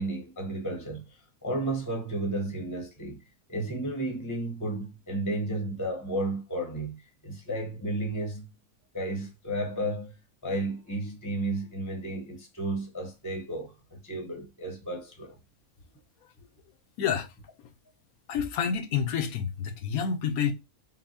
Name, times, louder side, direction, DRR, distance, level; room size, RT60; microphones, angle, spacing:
voice 1, 0.0-3.2 3.5-8.5 8.9-10.2 10.4-15.4, right 1 dB, 15° left, 0.8 m, -33 dB
voice 2, 17.0-17.3 18.3-20.5, left 7 dB, 85° left, 1.2 m, -28 dB
5.6 x 2.3 x 2.6 m
omnidirectional pair, 1.5 m